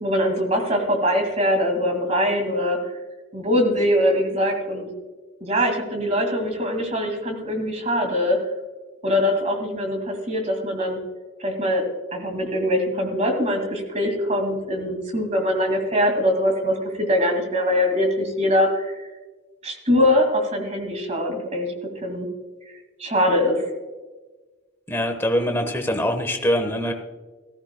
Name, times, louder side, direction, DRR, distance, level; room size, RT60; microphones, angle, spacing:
voice 1, 0.0-2.8 3.3-4.9 5.4-8.4 9.0-11.0 11.4-18.9 19.6-22.3 23.0-23.7, equal, 35° right, 4 dB, 2.1 m, -22 dB
voice 2, 24.9-26.9, equal, 10° left, 5 dB, 1.1 m, -23 dB
15.0 x 14.5 x 2.2 m, 1.3 s
head